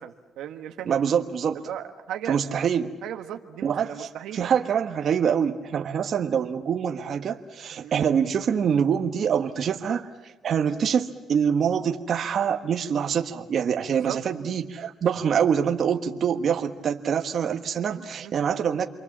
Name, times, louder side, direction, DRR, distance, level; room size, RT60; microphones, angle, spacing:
voice 1, 0.0-0.9 1.7-2.4 3.0-4.5 7.8-8.0 14.0-14.2 17.8-18.3, right 10 dB, 85° right, 5 dB, 1.4 m, -37 dB
voice 2, 0.8-1.7 2.3-2.9 3.6-18.9, right 7 dB, 60° right, 4 dB, 1.4 m, -25 dB
28.5 x 23.5 x 7.4 m, 1.1 s
cardioid pair, 90°, 0 cm